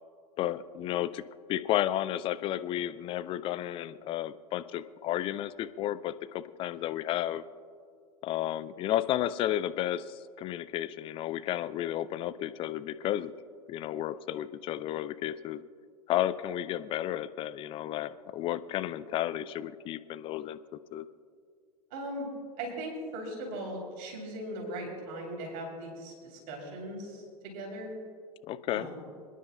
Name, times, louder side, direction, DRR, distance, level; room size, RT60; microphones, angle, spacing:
voice 1, 0.4-1.2 1.5-7.4 8.2-13.3 13.7-15.6 16.1-21.1 28.5-28.9, left 12 dB, 25° left, 14 dB, 0.4 m, -32 dB
voice 2, 21.9-22.3 22.6-28.0 28.7-29.0, right 1 dB, 45° right, -1 dB, 3.4 m, -39 dB
27.5 x 10.0 x 2.3 m, 2.2 s
figure-of-eight pair, 85°, 20 cm